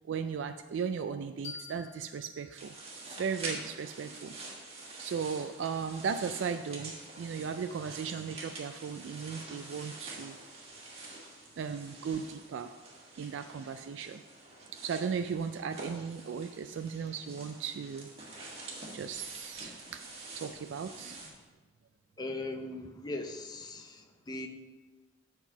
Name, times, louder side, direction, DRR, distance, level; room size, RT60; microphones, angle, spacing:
voice 1, 0.1-2.7 3.1-4.4 5.0-10.4 11.6-12.7 13.2-14.2 14.8-18.1 18.9-20.0 20.3-21.2, right 6 dB, 75° right, 8 dB, 0.3 m, -36 dB
sound 1, 1.4-4.2, left 5 dB, 65° left, 1.7 m, -50 dB
sound 2, 2.6-21.3, right 2 dB, 30° right, 1.6 m, -46 dB
voice 2, 22.2-24.5, left 2 dB, 20° left, 5 dB, 0.6 m, -39 dB
7.7 x 4.4 x 5.9 m, 1.3 s
head